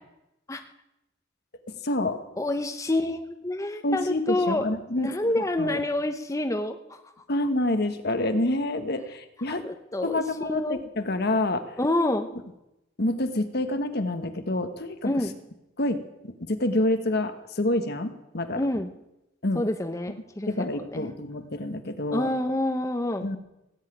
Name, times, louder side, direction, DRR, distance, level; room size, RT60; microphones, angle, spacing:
voice 1, 1.7-2.2 3.8-5.1 5.6-5.8 7.3-9.6 10.0-11.7 13.0-15.1 15.8-16.0 16.4-18.7 19.4-19.6 20.5-22.3 23.2-23.4, left 1 dB, 60° left, 8 dB, 1.4 m, -27 dB
voice 2, 2.4-4.6 5.0-7.1 9.5-10.8 11.8-12.3 15.0-15.3 18.6-18.9 19.5-21.1 22.1-23.3, left 1 dB, 15° left, 6 dB, 0.8 m, -28 dB
17.0 x 8.3 x 9.1 m, 0.90 s
head